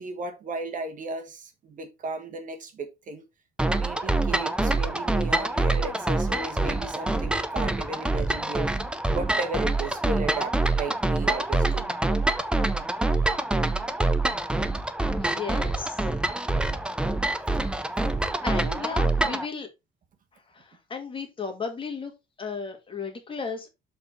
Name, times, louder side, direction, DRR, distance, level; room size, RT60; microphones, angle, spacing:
voice 1, 0.0-3.2 3.7-8.7 9.1-11.9 13.6-13.8, right 3 dB, 45° right, 1.5 m, -35 dB
sound 1, 3.6-19.5, right 2 dB, 5° right, 0.6 m, -26 dB
voice 2, 15.1-16.0 18.4-19.7 20.3-22.1 22.4-23.7, left 5 dB, 25° left, 1.8 m, -35 dB
7.1 x 4.1 x 4.3 m
cardioid pair, 135°, 19 cm